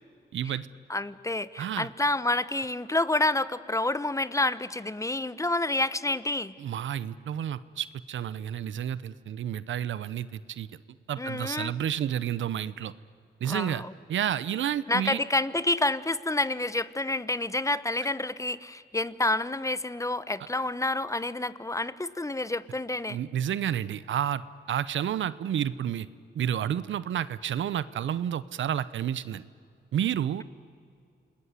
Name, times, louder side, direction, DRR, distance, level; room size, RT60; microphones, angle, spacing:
voice 1, 0.3-0.7 1.6-1.9 6.6-10.7 11.1-12.9 13.4-13.8 14.1-15.2 23.1-24.4 24.7-26.1 26.3-29.4 29.9-30.4, right 10 dB, 90° right, 17 dB, 0.8 m, -30 dB
voice 2, 0.9-6.5 11.2-11.7 13.4-13.9 14.9-23.2, left 2 dB, 15° left, 16 dB, 0.9 m, -28 dB
28.5 x 20.0 x 9.6 m, 2.3 s
cardioid pair, 80°, 19 cm